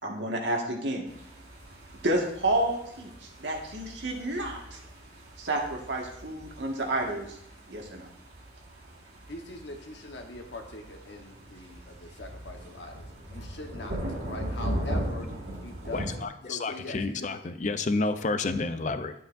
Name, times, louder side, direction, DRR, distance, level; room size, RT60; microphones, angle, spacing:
voice 1, 0.0-1.0 2.0-4.8 5.4-7.3 7.7-8.1, right 1 dB, 85° right, 0 dB, 1.7 m, -30 dB
sound 1, 1.1-16.2, right 1 dB, 65° right, 2.3 m, -39 dB
voice 2, 9.3-14.0 14.3-15.3 15.6-16.1 16.5-17.3, left 2 dB, 75° left, 3 dB, 1.2 m, -42 dB
voice 3, 15.9-19.1, left 3 dB, 40° left, 9 dB, 0.5 m, -30 dB
11.5 x 7.7 x 2.6 m, 0.74 s
head